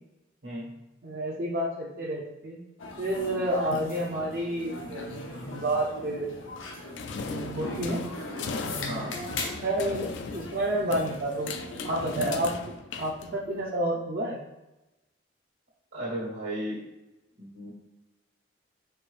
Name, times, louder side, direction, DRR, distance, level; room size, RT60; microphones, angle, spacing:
voice 1, 0.4-0.8 8.8-9.1 15.9-16.8 17.4-17.7, right 1 dB, 80° right, -5 dB, 1.4 m, -35 dB
voice 2, 1.0-2.6 3.0-6.4 7.3-8.0 8.6-9.1 9.6-11.5 11.8-14.4, right 1 dB, 50° right, -4 dB, 0.5 m, -30 dB
sound 1, 2.8-12.4, left 1 dB, 85° left, 0.7 m, -39 dB
sound 2, 7.0-13.7, left 4 dB, 65° left, 0.3 m, -38 dB
4.5 x 2.6 x 3.1 m, 1.0 s
head